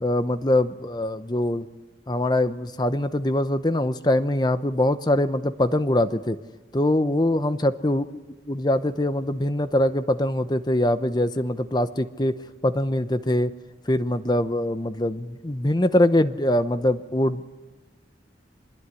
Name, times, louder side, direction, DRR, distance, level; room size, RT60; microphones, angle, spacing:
voice 1, 0.0-1.7 2.1-6.4 6.7-8.0 8.5-12.3 12.6-13.5 13.9-17.4, left 1 dB, 25° left, 11 dB, 0.9 m, -23 dB
24.5 x 21.5 x 9.9 m, 1.2 s
head